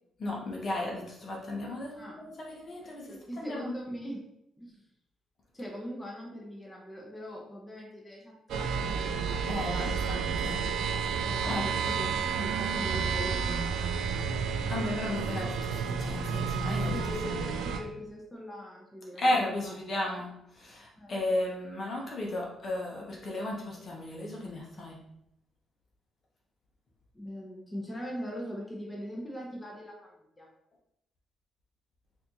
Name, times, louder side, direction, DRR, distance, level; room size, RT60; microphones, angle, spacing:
voice 1, 0.2-3.7 9.4-10.6 10.9-11.8 14.7-17.0 19.2-25.0, left 1 dB, 45° left, -2 dB, 1.0 m, -34 dB
voice 2, 3.1-4.2 4.6-4.8 5.5-10.1 11.2-14.3 16.8-19.7 21.0-21.1 27.1-30.5, equal, 15° left, -2 dB, 0.9 m, -41 dB
sound 1, 8.5-17.8, right 6 dB, 80° right, 0.3 m, -31 dB
4.1 x 2.7 x 3.0 m, 0.78 s
cardioid pair, 90°, 0 cm